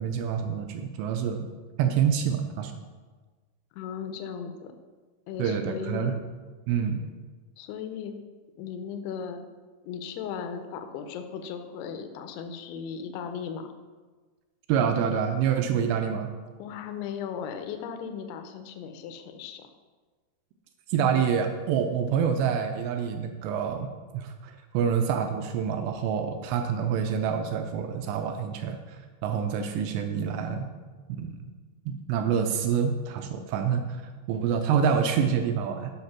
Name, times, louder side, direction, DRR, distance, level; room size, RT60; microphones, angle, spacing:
voice 1, 0.0-1.5 1.8-2.7 5.4-6.1 6.7-7.0 14.7-16.3 20.9-23.9 24.1-30.7 31.1-31.4 31.9-34.0 34.3-35.9, right 7 dB, 85° right, 6 dB, 2.5 m, -27 dB
voice 2, 3.7-4.7 5.3-6.2 7.6-8.1 8.6-9.4 9.8-13.7 16.6-19.6, left 7 dB, 85° left, 7 dB, 2.3 m, -36 dB
7.4 x 5.7 x 5.9 m, 1.4 s
omnidirectional pair, 5.5 m